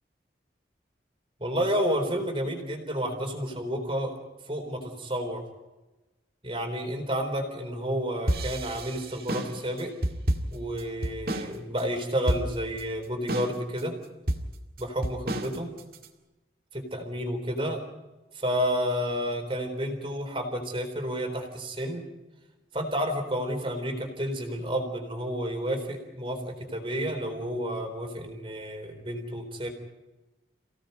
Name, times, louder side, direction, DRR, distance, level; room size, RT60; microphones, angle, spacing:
voice 1, 1.4-4.2 4.5-5.4 6.4-9.9 10.5-14.0 14.8-15.7 16.7-17.8 18.3-22.0 22.7-29.7, equal, 30° right, 3 dB, 4.0 m, -30 dB
sound 1, 8.3-11.5 11.8-11.9 12.3-12.8 13.3-13.8 14.3-16.1, right 1 dB, 55° right, 2.2 m, -30 dB
29.5 x 17.5 x 5.4 m, 1.1 s
head